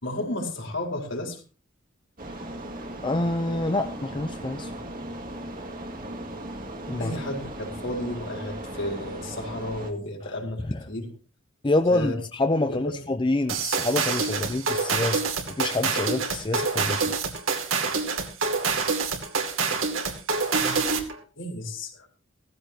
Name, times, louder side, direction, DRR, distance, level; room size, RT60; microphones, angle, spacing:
voice 1, 0.0-1.4 7.0-11.1 11.9-12.2 12.6-13.1 14.8-14.9 20.5-20.9 21.4-22.1, left 1 dB, 65° left, 1 dB, 4.6 m, -33 dB
sound 1, 2.2-9.9, right 1 dB, 45° right, 2.2 m, -37 dB
voice 2, 3.0-4.7 6.9-7.1 10.2-10.4 10.6-10.9 11.6-17.2, left 2 dB, 25° left, 8 dB, 0.7 m, -27 dB
sound 2, 13.5-21.2, right 4 dB, 75° right, 2.6 m, -26 dB
17.0 x 15.0 x 2.9 m, 0.32 s
head